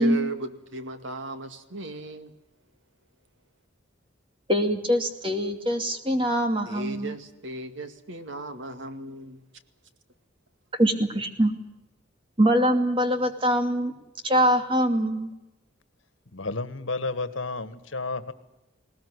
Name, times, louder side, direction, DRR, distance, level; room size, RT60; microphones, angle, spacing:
voice 1, 0.0-2.3 6.6-9.4, right 2 dB, 75° right, 2.2 m, -36 dB
voice 2, 4.5-7.1 10.8-11.5 12.4-13.9 14.2-15.3, equal, 25° right, 2.5 m, -23 dB
voice 3, 16.3-18.3, left 3 dB, 80° left, 1.7 m, -31 dB
20.0 x 19.5 x 9.7 m
head